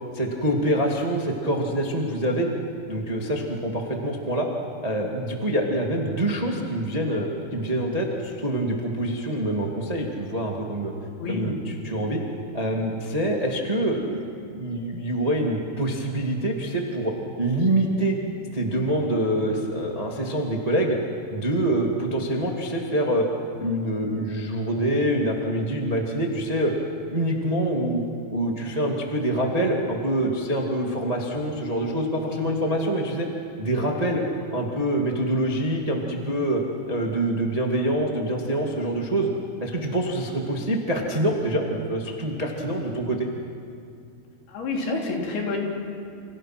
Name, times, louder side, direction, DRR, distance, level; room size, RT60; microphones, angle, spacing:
voice 1, 0.1-2.5 2.9-4.5 4.8-10.9 11.3-12.2 12.5-14.2 14.5-18.2 18.5-21.0 21.3-23.3 23.6-26.7 27.1-28.0 28.3-33.3 33.6-34.2 34.5-39.3 39.6-43.3, right 1 dB, 25° right, 0 dB, 0.7 m, -25 dB
voice 2, 11.2-11.5 32.3-32.5 44.5-45.7, left 3 dB, 60° left, 0 dB, 5.1 m, -28 dB
29.5 x 27.5 x 6.0 m, 2.5 s
omnidirectional pair, 5.2 m